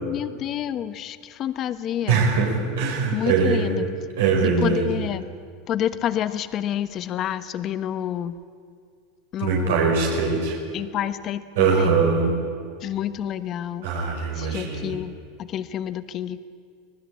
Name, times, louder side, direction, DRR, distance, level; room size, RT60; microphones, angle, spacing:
voice 1, 0.0-2.3 3.1-3.8 4.4-5.3 5.7-8.4 9.3-9.9 10.7-12.0 12.8-13.9 14.4-16.4, left 10 dB, 35° left, 12 dB, 1.0 m, -29 dB
voice 2, 2.1-3.8 4.2-4.9 9.4-10.6 11.6-12.3 13.8-15.0, right 5 dB, 85° right, 0 dB, 5.2 m, -22 dB
24.5 x 19.0 x 8.5 m, 2.1 s
supercardioid pair, 140°, 0 cm